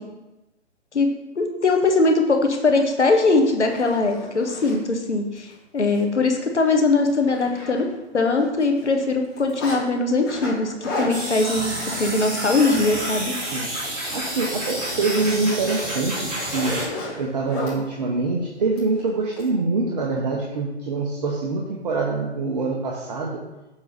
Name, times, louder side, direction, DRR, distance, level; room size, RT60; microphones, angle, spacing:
voice 1, 1.3-7.9 8.1-13.3, left 3 dB, 75° left, 4 dB, 1.3 m, -21 dB
Zipper (clothing), 2.9-3.0 3.5-4.8 5.4-5.5 5.9-6.0 6.4-6.5 6.8-8.1 8.4-9.8 10.2-13.2 13.5-13.8 14.1-17.8 18.8-19.5, left 2 dB, 20° left, 2.4 m, -35 dB
sound 1, 11.1-16.9, right 1 dB, 15° right, 1.7 m, -29 dB
voice 2, 14.1-16.9 17.2-23.4, right 3 dB, 35° right, -1 dB, 0.9 m, -25 dB
6.9 x 3.9 x 6.6 m, 1.0 s
figure-of-eight pair, 140°, 35 cm